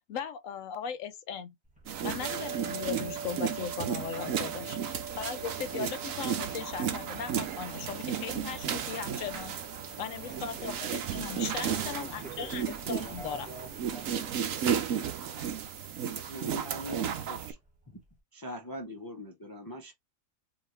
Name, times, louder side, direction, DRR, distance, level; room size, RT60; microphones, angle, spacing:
voice 1, 0.1-1.5 2.0-4.8 5.2-9.5 10.0-13.5, left 8 dB, 75° left, 1.0 m, -38 dB
sound 1, 1.6-18.2, right 2 dB, 5° right, 1.6 m, -53 dB
sound 2, 1.9-17.5, right 8 dB, 80° right, 1.2 m, -34 dB
sound 3, 2.2-14.7, right 4 dB, 30° right, 0.3 m, -46 dB
voice 2, 4.1-4.8 10.1-10.8 11.6-14.7, right 2 dB, 45° right, 2.6 m, -49 dB
voice 3, 16.3-17.6 17.9-18.0 18.3-19.9, equal, 20° left, 0.8 m, -42 dB
4.9 x 2.8 x 3.1 m
omnidirectional pair, 1.4 m